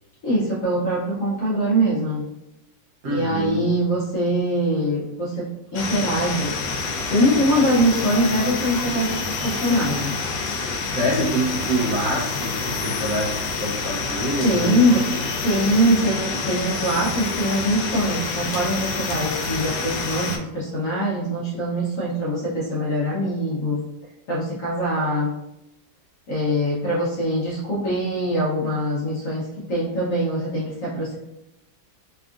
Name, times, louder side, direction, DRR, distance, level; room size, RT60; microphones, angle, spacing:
voice 1, 0.2-2.3 3.1-6.6 7.1-10.3 14.4-15.1 15.4-23.8 24.3-25.3 26.3-31.2, equal, 65° left, -6 dB, 0.8 m, -23 dB
voice 2, 3.0-3.7 10.8-14.8, right 1 dB, 65° right, -5 dB, 1.0 m, -26 dB
sound 1, 5.8-20.4, left 4 dB, 90° left, 1.3 m, -28 dB
3.5 x 2.4 x 2.4 m, 0.89 s
omnidirectional pair, 2.0 m